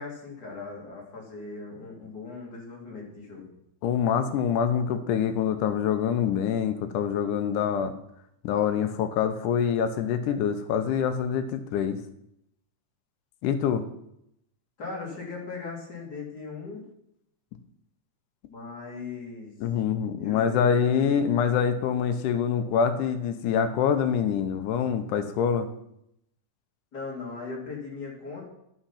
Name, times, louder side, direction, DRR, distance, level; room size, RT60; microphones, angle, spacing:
voice 1, 0.0-3.5 14.8-16.9 18.5-19.5 20.2-21.3 26.9-28.4, left 4 dB, 35° left, -2 dB, 2.6 m, -38 dB
voice 2, 3.8-7.9 8.4-12.0 13.4-13.9 19.6-25.7, left 7 dB, 85° left, 9 dB, 2.3 m, -25 dB
11.5 x 5.7 x 5.7 m, 0.78 s
omnidirectional pair, 3.6 m